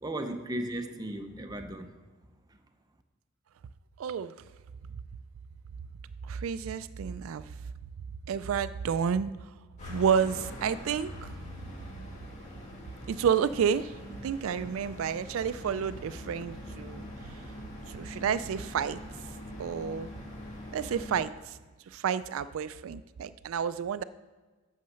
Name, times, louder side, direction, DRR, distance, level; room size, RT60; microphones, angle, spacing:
voice 1, 0.0-1.9, right 1 dB, 20° right, 5 dB, 0.7 m, -35 dB
voice 2, 4.0-4.3 6.2-7.5 8.3-9.5 9.9-11.3 13.1-13.9 14.2-17.1 17.9-19.0 19.6-20.1 20.7-21.6 21.9-24.0, right 7 dB, 90° right, 14 dB, 0.3 m, -30 dB
sound 1, 9.8-21.3, left 1 dB, 35° left, 2.1 m, -43 dB
8.4 x 6.6 x 6.3 m, 1.3 s
head